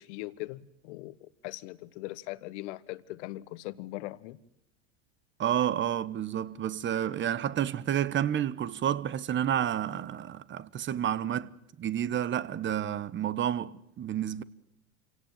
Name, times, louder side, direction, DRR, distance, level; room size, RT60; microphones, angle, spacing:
voice 1, 0.0-4.4, left 18 dB, 70° left, 1.4 m, -40 dB
voice 2, 5.4-14.4, right 10 dB, 30° right, 1.2 m, -30 dB
27.5 x 17.5 x 9.3 m
supercardioid pair, 105°, 36 cm